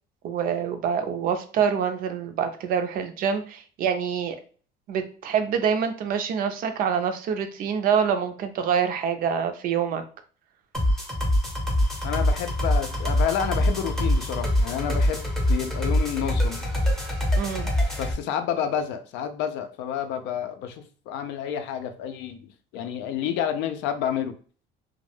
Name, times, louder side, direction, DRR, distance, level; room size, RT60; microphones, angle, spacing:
voice 1, 0.2-4.4 4.9-10.0 17.4-17.7, right 7 dB, 50° right, 8 dB, 0.4 m, -26 dB
sound 1, 10.7-18.1, left 1 dB, ahead, 0.5 m, -24 dB
voice 2, 12.0-16.6 18.0-24.3, left 9 dB, 80° left, 8 dB, 0.4 m, -29 dB
2.2 x 2.1 x 3.0 m, 0.42 s
cardioid pair, 145°, 18 cm